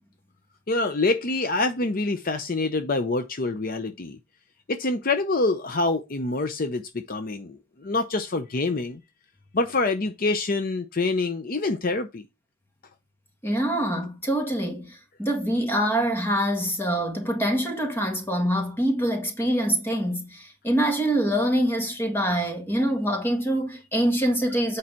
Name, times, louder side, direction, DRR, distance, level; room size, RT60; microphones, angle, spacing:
voice 1, 0.7-4.2 4.7-9.0 9.5-12.2, left 3 dB, 45° left, 0.7 m, -26 dB
voice 2, 13.4-24.8, right 1 dB, 10° left, 1.9 m, -25 dB
8.6 x 4.8 x 4.4 m
head